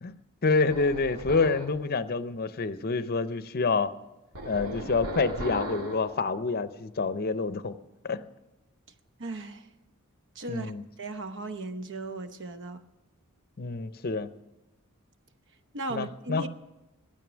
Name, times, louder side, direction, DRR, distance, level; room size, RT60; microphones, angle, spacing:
voice 1, 0.0-3.9 4.4-7.8 8.0-8.2 10.5-10.8 13.6-14.3 15.9-16.5, left 4 dB, 45° left, 0.6 m, -28 dB
sound 1, 0.7-1.8 4.3-6.1, right 1 dB, 80° right, 2.3 m, -37 dB
voice 2, 9.2-9.7 10.3-10.7 11.0-12.8 15.7-16.5, right 2 dB, 55° right, 0.9 m, -36 dB
16.0 x 12.5 x 6.2 m
head